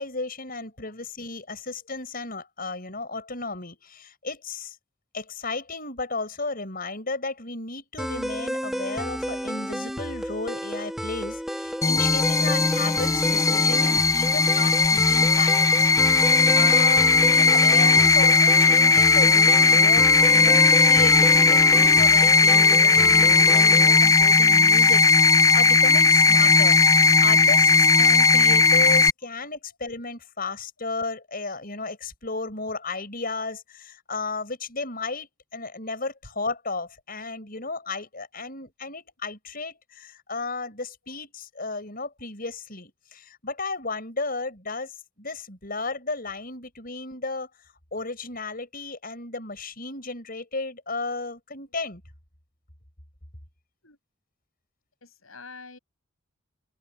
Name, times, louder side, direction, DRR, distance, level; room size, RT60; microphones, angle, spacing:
voice 1, 0.0-4.8 5.1-47.5 47.9-52.0, left 3 dB, 45° left, 6.4 m, -34 dB
sound 1, 8.0-24.0, equal, ahead, 1.6 m, -32 dB
sound 2, 11.8-29.1, left 4 dB, 15° left, 0.4 m, -17 dB
voice 2, 55.0-55.8, left 4 dB, 85° left, 6.7 m, -46 dB
head